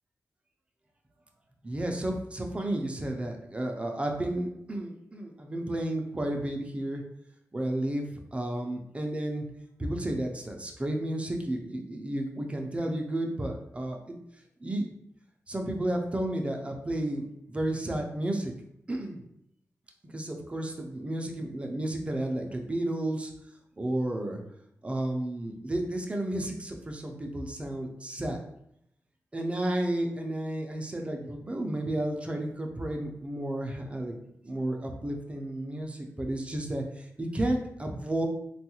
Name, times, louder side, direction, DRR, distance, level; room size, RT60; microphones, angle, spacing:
voice 1, 1.6-7.0 7.5-8.1 8.3-9.4 9.8-14.2 14.6-14.8 15.5-18.5 18.9-19.2 20.0-23.3 23.8-24.4 24.8-28.4 29.3-34.1 34.4-38.3, right 1 dB, 20° right, 2 dB, 0.4 m, -32 dB
3.4 x 2.3 x 2.9 m, 0.75 s
wide cardioid pair, 120°, 6 cm